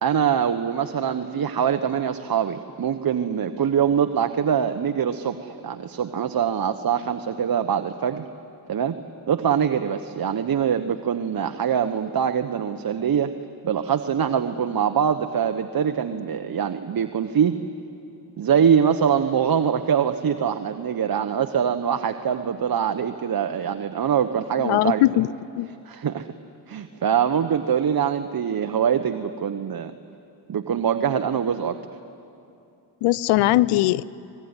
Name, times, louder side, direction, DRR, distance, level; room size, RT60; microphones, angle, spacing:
voice 1, 0.0-8.3 8.7-9.0 9.3-13.3 13.6-17.5 18.4-25.0 25.9-26.3 26.7-29.9 30.5-31.8, right 8 dB, 45° right, 8 dB, 1.1 m, -23 dB
voice 2, 24.6-25.3 25.6-25.7 33.0-34.0, left 16 dB, 80° left, 20 dB, 0.7 m, -20 dB
24.5 x 21.0 x 9.8 m, 2.7 s
supercardioid pair, 60°, 50 cm